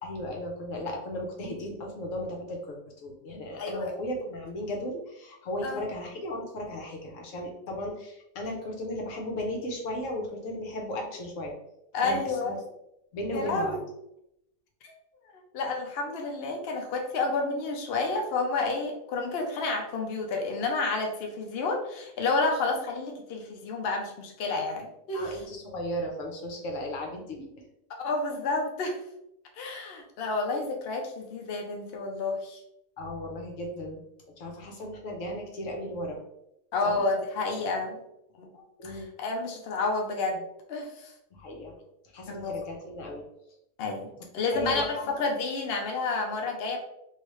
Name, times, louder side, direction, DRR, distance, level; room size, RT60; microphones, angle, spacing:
voice 1, 0.0-11.5 12.0-12.6 13.1-13.8 25.1-27.5 33.0-34.0 34.4-36.2 36.8-37.0 38.8-39.1 41.3-41.7 42.1-43.2 44.5-45.1, left 1 dB, 60° left, 1 dB, 1.0 m, -35 dB
voice 2, 3.6-3.9 5.6-5.8 11.9-12.5 13.3-13.8 14.8-14.9 15.5-25.4 28.0-29.0 29.6-32.6 36.7-38.0 38.4-40.4 40.7-41.1 42.3-42.6 43.8-46.8, left 3 dB, 75° left, 2 dB, 0.5 m, -30 dB
3.2 x 2.7 x 3.0 m, 0.81 s
omnidirectional pair, 1.8 m